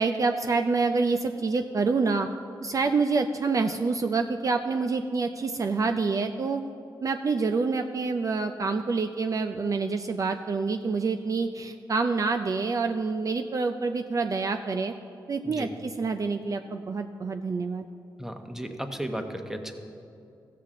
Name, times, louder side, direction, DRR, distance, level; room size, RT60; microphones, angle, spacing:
voice 1, 0.0-2.3 2.6-6.6 7.0-14.9 15.3-17.9, right 4 dB, 45° right, 6 dB, 0.4 m, -27 dB
voice 2, 18.2-19.7, right 1 dB, 5° right, 5 dB, 0.9 m, -34 dB
14.5 x 7.5 x 3.7 m, 2.6 s
cardioid pair, 70°, 8 cm